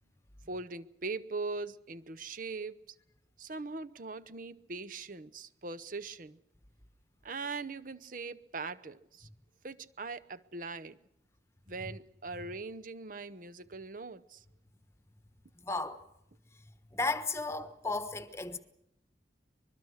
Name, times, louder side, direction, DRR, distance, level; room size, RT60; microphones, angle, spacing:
voice 1, 0.5-2.8 3.4-6.4 7.2-9.3 9.6-11.0 11.7-14.4, right 3 dB, 50° right, 0.9 m, -41 dB
voice 2, 15.6-16.0 16.9-18.6, left 3 dB, 15° left, 1.2 m, -34 dB
24.5 x 22.0 x 6.5 m
head